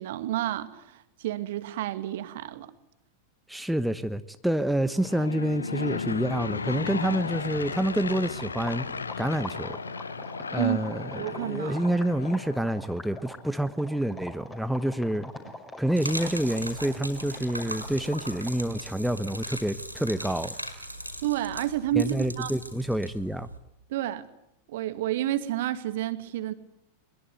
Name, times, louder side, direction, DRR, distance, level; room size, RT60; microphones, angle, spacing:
voice 1, 0.0-2.7 10.6-10.8 11.1-11.8 21.2-22.5 23.9-24.3 24.7-26.5, right 13 dB, 55° right, 2.1 m, -30 dB
voice 2, 3.5-8.9 9.2-9.8 10.5-15.3 15.8-20.5 21.9-23.5, right 1 dB, ahead, 1.1 m, -28 dB
Aircraft / Engine, 4.9-12.9, left 5 dB, 75° left, 1.1 m, -35 dB
sound 1, 7.0-18.7, left 1 dB, 15° left, 5.8 m, -44 dB
Gurgling / Liquid, 15.9-23.6, right 1 dB, 90° right, 5.4 m, -39 dB
23.0 x 22.0 x 9.4 m
figure-of-eight pair, 90°, 0 cm